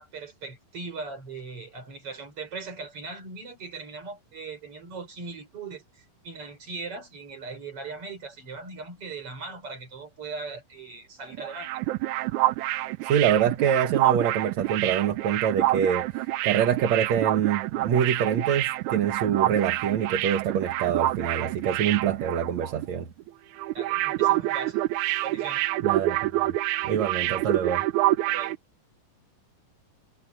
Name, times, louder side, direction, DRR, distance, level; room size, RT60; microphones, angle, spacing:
voice 1, 0.0-11.7 23.7-24.8 25.2-25.7 28.3-28.6, right 4 dB, 40° right, 5.6 m, -39 dB
sound 1, 11.3-22.9 23.1-23.3 23.6-28.6, right 16 dB, 80° right, 1.8 m, -27 dB
voice 2, 13.0-23.1 25.8-26.6 26.8-27.9, right 8 dB, 55° right, 2.6 m, -25 dB
omnidirectional pair, 4.2 m